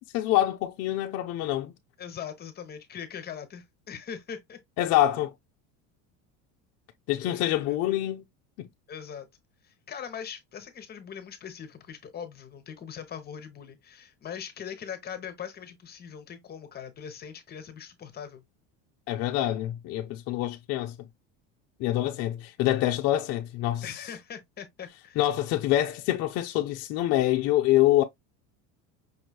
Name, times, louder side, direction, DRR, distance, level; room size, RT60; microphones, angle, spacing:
voice 1, 0.1-1.7 4.8-5.3 7.1-8.2 8.6-8.7 19.1-20.9 21.8-24.0 25.2-28.0, left 14 dB, 45° left, 0.5 m, -26 dB
voice 2, 2.0-4.6 7.2-7.8 8.9-9.3 9.6-18.4 21.9-22.1 23.8-25.2, left 8 dB, 25° left, 0.9 m, -41 dB
5.4 x 3.1 x 2.2 m
cardioid pair, 145°, 36 cm